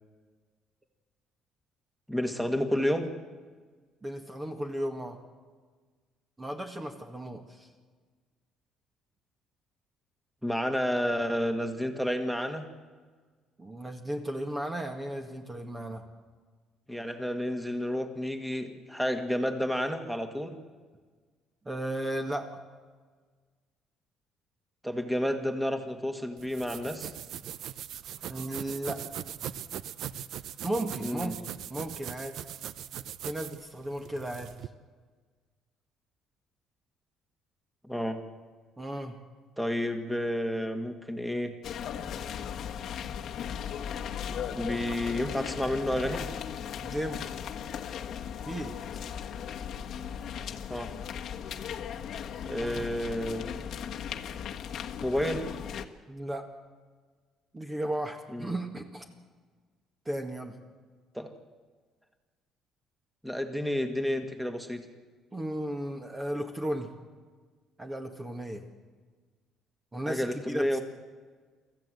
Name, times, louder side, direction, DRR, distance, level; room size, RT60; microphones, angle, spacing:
voice 1, 2.1-3.1 10.4-12.6 16.9-20.6 24.8-27.1 31.0-31.3 37.9-38.2 39.6-41.5 44.5-46.3 50.7-50.9 52.4-53.6 55.0-55.4 58.3-58.5 61.1-61.3 63.2-64.8 70.1-70.8, equal, 5° right, 6 dB, 2.0 m, -30 dB
voice 2, 4.0-5.2 6.4-7.7 13.6-16.0 21.7-22.6 28.3-29.0 30.6-31.3 31.7-32.4 33.2-34.5 38.8-39.1 46.8-47.4 48.5-48.7 52.5-52.9 56.1-56.5 57.5-59.1 60.1-60.5 65.3-66.9 67.8-68.6 69.9-70.8, right 1 dB, 20° right, 4 dB, 1.8 m, -35 dB
sound 1, 26.4-34.7, right 10 dB, 70° right, 0.7 m, -40 dB
sound 2, 41.6-55.9, left 8 dB, 65° left, 1.3 m, -37 dB
24.0 x 14.5 x 7.8 m, 1.5 s
cardioid pair, 100°, 0 cm